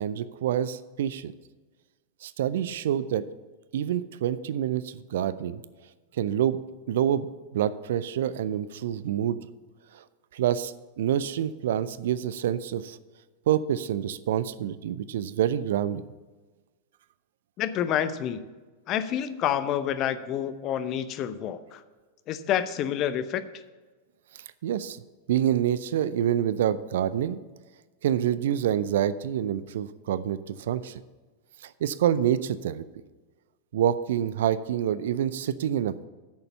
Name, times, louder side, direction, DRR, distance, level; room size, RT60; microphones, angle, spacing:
voice 1, 0.0-1.3 2.2-3.2 3.7-5.6 6.2-6.6 6.9-9.4 9.9-10.0 10.3-13.0 13.5-16.0 24.3-25.0 25.3-27.4 28.0-31.0 31.6-32.8 33.7-36.1, right 10 dB, 60° right, 16 dB, 0.4 m, -27 dB
voice 2, 17.6-18.4 18.9-21.8 22.3-23.4, left 10 dB, 35° left, 12 dB, 0.7 m, -28 dB
9.4 x 6.7 x 7.1 m, 1.3 s
figure-of-eight pair, 90°, 0 cm